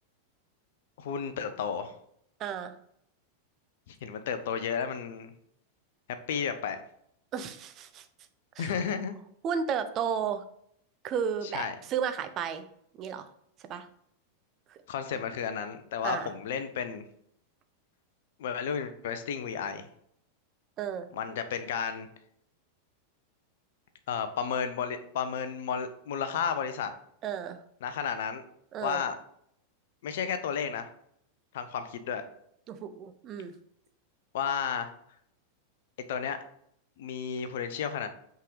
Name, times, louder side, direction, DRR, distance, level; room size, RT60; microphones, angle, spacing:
voice 1, 1.0-1.9 3.9-5.3 6.3-6.8 8.6-9.2 11.4-11.7 14.9-17.0 18.4-19.9 21.1-22.1 24.1-26.9 27.8-28.4 28.8-29.2 30.0-30.9 31.5-32.2 34.3-34.9 36.1-36.4 37.0-38.1, left 7 dB, 55° left, 10 dB, 0.6 m, -32 dB
voice 2, 2.4-2.8 7.3-8.1 8.6-8.7 9.4-10.4 11.0-12.6 13.0-13.3 13.7-13.9 14.7-14.8 16.0-16.3 20.8-21.1 27.2-27.6 28.7-29.0 32.7-33.5, right 7 dB, 35° right, 9 dB, 0.6 m, -33 dB
5.6 x 3.8 x 4.8 m, 0.70 s
figure-of-eight pair, 90°, 0 cm